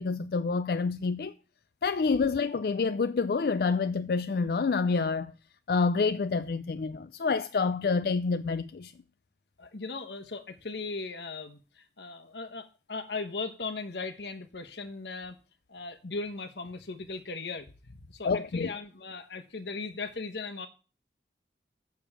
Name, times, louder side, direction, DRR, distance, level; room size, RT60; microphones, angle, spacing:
voice 1, 0.0-1.3 1.8-5.3 5.7-8.9 18.2-18.7, left 4 dB, 55° left, 0.4 m, -28 dB
voice 2, 9.6-15.4 15.7-20.7, left 3 dB, 80° left, 1.2 m, -38 dB
7.0 x 7.0 x 7.3 m
head